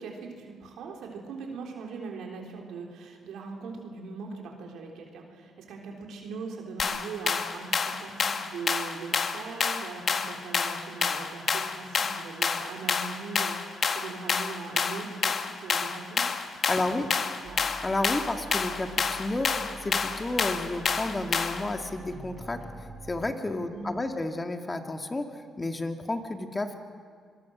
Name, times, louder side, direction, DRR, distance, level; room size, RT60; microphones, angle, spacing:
voice 1, 0.0-16.3 17.0-17.1 17.4-17.6 23.7-24.3, right 4 dB, 80° right, 0 dB, 3.6 m, -40 dB
sound 1, 6.8-21.7, left 5 dB, 50° left, 1.5 m, -29 dB
voice 2, 16.7-17.1 17.8-19.5 19.8-25.2 25.6-26.8, left 2 dB, 20° left, 5 dB, 2.1 m, -31 dB
sound 2, 17.4-23.3, equal, 10° right, 4.9 m, -45 dB
25.5 x 22.0 x 6.3 m, 2.1 s
cardioid pair, 90°, 0 cm